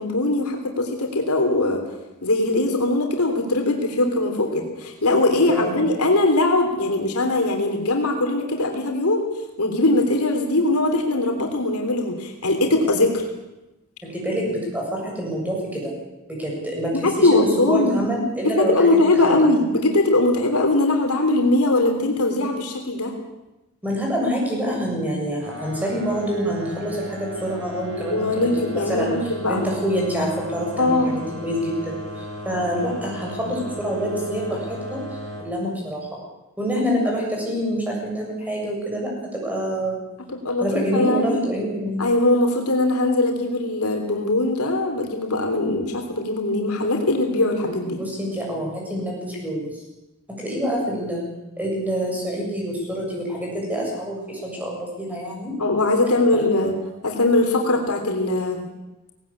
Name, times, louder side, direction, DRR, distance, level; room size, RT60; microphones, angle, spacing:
voice 1, 0.0-1.8 2.2-9.2 9.6-13.3 17.0-18.0 18.4-23.1 28.0-29.6 30.8-31.1 40.3-41.4 42.0-48.0 50.7-50.8 55.6-56.7 57.0-58.6, left 2 dB, 80° left, 2 dB, 3.3 m, -21 dB
voice 2, 5.4-5.8 14.0-15.9 16.3-19.4 23.8-36.1 36.6-40.0 40.6-42.1 48.0-49.8 50.4-51.2 51.6-55.5 56.3-56.4, equal, 5° right, -2 dB, 7.6 m, -26 dB
sound 1, 25.4-35.4, equal, 60° right, 7.3 m, -35 dB
19.0 x 18.5 x 8.7 m, 0.99 s
head